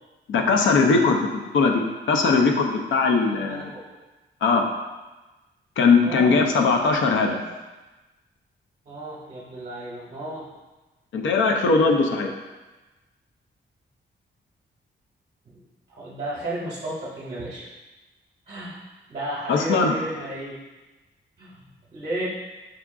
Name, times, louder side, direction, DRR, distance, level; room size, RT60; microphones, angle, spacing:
voice 1, 0.3-1.3 1.5-3.7 4.4-4.6 5.8-7.4 11.1-12.3 19.5-19.9, left 4 dB, 80° left, 3 dB, 0.5 m, -20 dB
voice 2, 3.4-3.9 6.0-6.4 8.9-10.5 15.5-15.6 15.9-17.7 18.5-18.8 19.1-20.6 21.4-21.6 21.9-22.3, right 1 dB, 35° right, -6 dB, 0.7 m, -33 dB
4.8 x 2.3 x 3.6 m, 1.2 s
wide cardioid pair, 160°, 20 cm